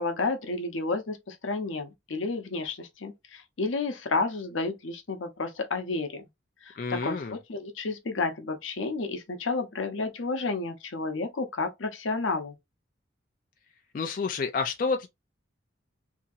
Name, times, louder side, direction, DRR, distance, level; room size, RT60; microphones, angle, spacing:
voice 1, 0.0-6.2 6.6-6.7 7.0-12.5, left 3 dB, 90° left, 0.7 m, -31 dB
voice 2, 6.8-7.4 13.9-15.1, left 4 dB, 45° left, 0.3 m, -29 dB
2.8 x 2.6 x 2.4 m
head